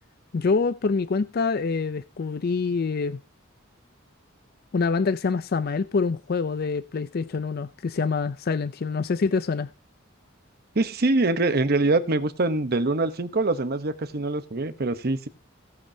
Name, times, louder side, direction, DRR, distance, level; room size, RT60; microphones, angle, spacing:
voice 1, 0.3-3.2 4.7-9.7, left 4 dB, 50° left, 0.4 m, -26 dB
voice 2, 10.7-15.3, right 2 dB, 50° right, 0.9 m, -24 dB
17.0 x 8.8 x 2.8 m
head